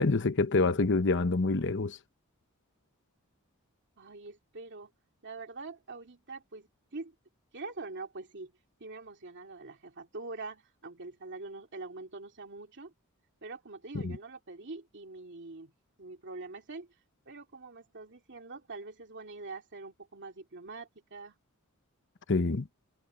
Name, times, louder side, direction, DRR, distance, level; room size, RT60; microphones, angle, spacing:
voice 1, 0.0-2.0 14.0-14.2 22.3-22.7, left 3 dB, 55° left, 1.0 m, -26 dB
voice 2, 4.0-4.9 5.2-7.1 7.5-8.5 8.8-12.9 13.4-15.7 16.0-16.9 17.3-21.4, right 3 dB, 55° right, 2.6 m, -44 dB
head